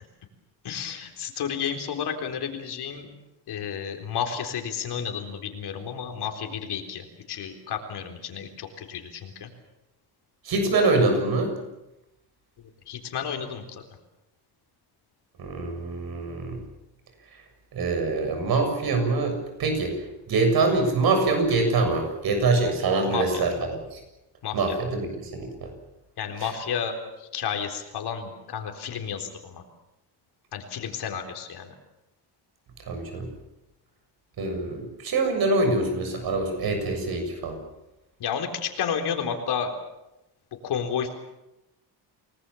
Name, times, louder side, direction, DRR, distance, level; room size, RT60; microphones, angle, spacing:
voice 1, 0.6-3.1 3.5-9.5 12.9-13.8 23.1-23.4 24.4-24.8 26.2-29.6 30.5-31.7 38.2-39.7 40.6-41.2, left 7 dB, 65° left, 4 dB, 3.9 m, -31 dB
voice 2, 10.4-11.6 15.4-16.6 17.7-19.9 20.3-24.0 24.5-25.7 26.4-26.5 32.9-33.3 34.4-37.6, right 3 dB, 60° right, 5 dB, 7.1 m, -24 dB
28.5 x 20.0 x 7.1 m, 0.92 s
cardioid pair, 140°, 42 cm